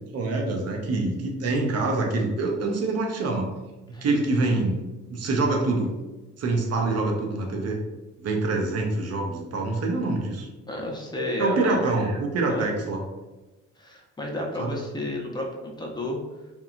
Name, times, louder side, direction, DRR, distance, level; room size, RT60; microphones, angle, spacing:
voice 1, 0.1-3.5 4.0-4.8 5.1-5.9 6.4-7.8 8.2-10.5 11.4-13.0 14.6-14.7, right 2 dB, 55° right, 1 dB, 0.7 m, -25 dB
voice 2, 10.7-11.9 12.5-12.7 13.8-16.2, left 1 dB, 15° left, -1 dB, 0.6 m, -31 dB
2.9 x 2.2 x 2.4 m, 1.1 s
cardioid pair, 90°, 30 cm